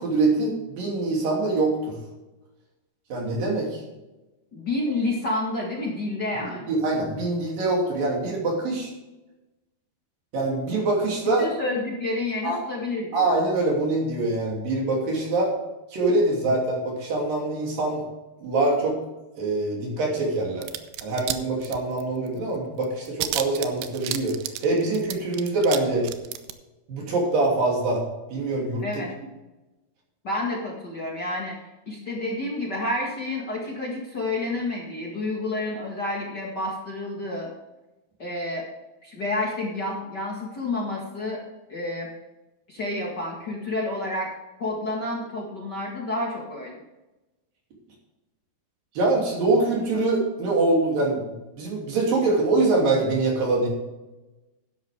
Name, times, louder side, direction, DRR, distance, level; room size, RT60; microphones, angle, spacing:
voice 1, 0.0-2.0 3.1-3.8 6.7-8.9 10.3-11.5 12.4-12.6 13.1-15.5 15.9-18.0 18.4-19.0 19.4-20.7 21.0-24.3 24.6-26.1 26.9-28.0 28.3-28.8 49.0-53.7, right 2 dB, 60° right, -2 dB, 4.4 m, -24 dB
voice 2, 4.5-6.7 11.4-13.3 28.8-29.1 30.2-31.5 31.9-37.5 38.2-38.6 39.0-41.4 41.7-42.1 42.7-44.3 44.6-46.7, left 2 dB, 45° left, -2 dB, 1.3 m, -29 dB
sound 1, 20.6-21.4 21.6-22.3 22.5-22.6 22.8-25.8 26.0-26.5, right 13 dB, 90° right, 3.0 m, -31 dB
12.5 x 10.5 x 3.6 m, 1.1 s
omnidirectional pair, 4.8 m